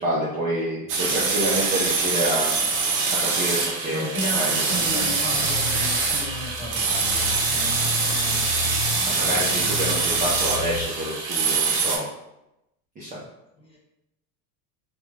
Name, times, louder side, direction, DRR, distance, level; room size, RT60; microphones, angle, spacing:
voice 1, 0.0-2.5 3.2-4.5 4.9-5.0 9.0-12.1 13.0-13.2, right 1 dB, 20° right, -7 dB, 0.5 m, -28 dB
sound 1, 0.9-12.0, right 4 dB, 50° right, 0.8 m, -24 dB
voice 2, 3.9-8.4 13.6-13.8, equal, 10° left, -5 dB, 1.0 m, -35 dB
sound 2, 4.7-10.9, left 4 dB, 65° left, 0.8 m, -34 dB
2.5 x 2.1 x 3.2 m, 0.87 s
supercardioid pair, 105°, 49 cm